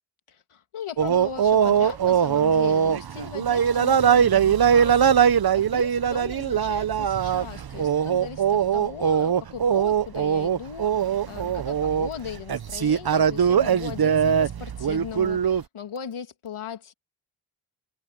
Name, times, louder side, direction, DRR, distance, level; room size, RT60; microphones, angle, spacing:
voice 1, 0.3-16.9, left 7 dB, 80° left, 2.6 m, -38 dB
sound 1, 1.0-15.6, right 8 dB, 45° right, 0.9 m, -21 dB
cardioid pair, 45°, 50 cm